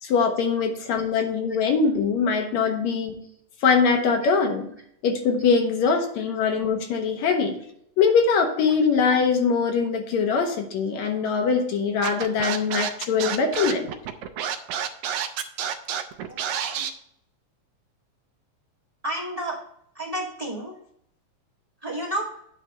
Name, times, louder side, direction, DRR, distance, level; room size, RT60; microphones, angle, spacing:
voice 1, 0.0-3.2 3.6-4.6 5.0-7.6 8.0-13.9, left 5 dB, 70° left, 4 dB, 2.1 m, -22 dB
Scratching (performance technique), 12.0-16.9, right 9 dB, 75° right, 2.0 m, -29 dB
voice 2, 16.3-16.8 19.0-19.5 19.9-20.8 21.8-22.3, right 1 dB, 15° right, -4 dB, 1.6 m, -31 dB
9.2 x 3.3 x 6.7 m, 0.70 s
omnidirectional pair, 3.5 m